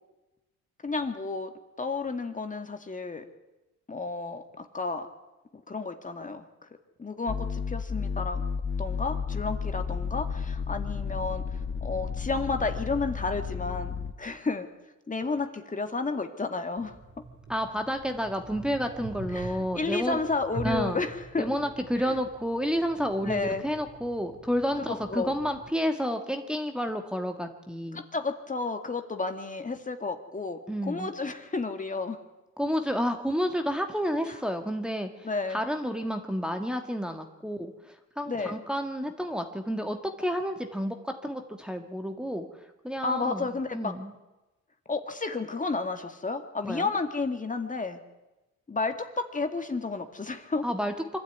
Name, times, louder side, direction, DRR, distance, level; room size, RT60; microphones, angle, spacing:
voice 1, 0.8-1.5 1.8-3.2 3.9-5.1 5.7-6.4 7.0-8.4 8.8-11.4 11.8-14.7 15.1-16.9 19.3-21.5 22.0-22.2 23.2-23.6 24.9-25.3 27.9-30.6 30.9-32.2 34.3-34.4 35.2-35.6 38.3-38.6 43.0-43.9 44.9-48.0 48.7-50.6, left 3 dB, 25° left, 6 dB, 2.1 m, -31 dB
sound 1, 7.3-14.1, left 6 dB, 40° left, 1.4 m, -32 dB
sound 2, 16.8-25.7, right 3 dB, 40° right, 4.0 m, -43 dB
voice 2, 17.5-20.2 20.6-21.0 21.4-28.0 30.7-31.1 32.6-42.5 42.8-44.1 46.6-46.9 50.6-50.9, equal, 5° right, 4 dB, 1.8 m, -30 dB
25.0 x 12.5 x 9.5 m, 1.0 s
cardioid pair, 90°, 30 cm